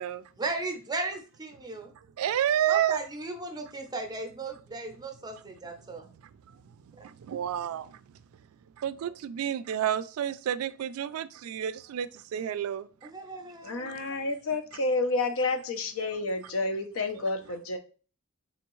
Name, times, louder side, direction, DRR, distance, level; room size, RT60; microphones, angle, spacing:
voice 1, 0.4-1.9 2.7-6.1 7.0-7.1 13.0-13.9, right 3 dB, 20° right, 0.6 m, -36 dB
voice 2, 2.2-3.0 7.0-8.0 8.8-12.9 13.7-14.2, right 10 dB, 75° right, 0.3 m, -30 dB
voice 3, 13.6-17.8, left 3 dB, 65° left, 0.6 m, -30 dB
3.6 x 3.4 x 3.0 m
head